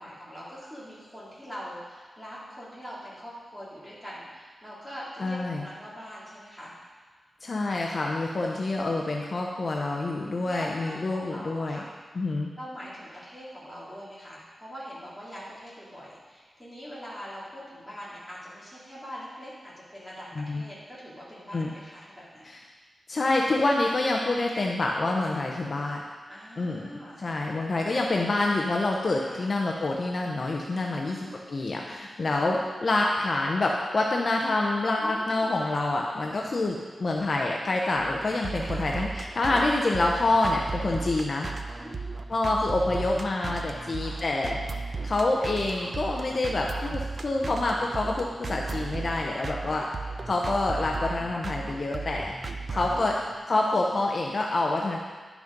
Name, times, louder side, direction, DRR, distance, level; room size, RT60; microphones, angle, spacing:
voice 1, 0.0-6.7 8.4-8.6 10.4-11.9 12.5-22.5 26.3-27.2 29.2-29.5 30.9-31.4 32.2-32.4 35.0-35.5 38.6-38.9 41.8-42.1 43.7-44.2 47.4-47.8 49.7-49.8 52.9-53.4, equal, ahead, -9 dB, 3.0 m, -43 dB
voice 2, 5.2-5.7 7.4-11.8 12.1-12.5 20.4-20.6 21.5-21.7 22.4-22.6 23.1-26.0 26.6-26.9 27.2-41.5 42.3-44.6 45.0-49.9 50.3-52.3 52.7-53.2 53.5-55.0, left 2 dB, 45° left, 0 dB, 0.7 m, -27 dB
sound 1, 38.0-53.3, right 4 dB, 40° right, 0.6 m, -35 dB
10.5 x 6.1 x 5.2 m, 1.4 s
wide cardioid pair, 165°, 0 cm